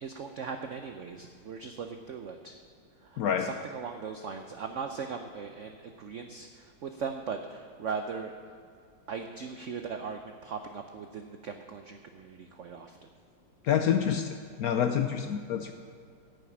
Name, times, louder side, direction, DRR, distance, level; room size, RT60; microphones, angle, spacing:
voice 1, 0.0-2.6 3.0-8.3 9.1-13.1, right 5 dB, 85° right, 6 dB, 0.6 m, -39 dB
voice 2, 3.2-3.5 13.6-15.7, left 8 dB, 70° left, 7 dB, 0.9 m, -27 dB
9.2 x 7.2 x 8.6 m, 2.3 s
omnidirectional pair, 2.0 m